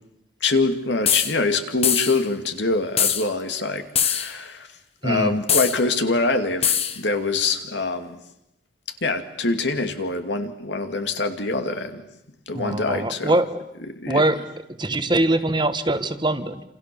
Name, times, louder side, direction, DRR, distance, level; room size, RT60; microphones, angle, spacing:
voice 1, 0.4-4.7 5.0-8.2 9.0-12.1 12.5-13.4 13.9-14.2, left 3 dB, 70° left, 7 dB, 2.5 m, -24 dB
sound 1, 1.1-1.3 1.8-2.2 3.0-3.3 4.0-4.3 5.5-5.8 6.6-7.0, left 8 dB, 35° left, 1.4 m, -21 dB
voice 2, 5.0-5.3 12.5-13.5 14.1-14.4 14.8-16.6, right 2 dB, 25° right, 10 dB, 1.4 m, -22 dB
28.5 x 27.5 x 7.0 m, 0.85 s
head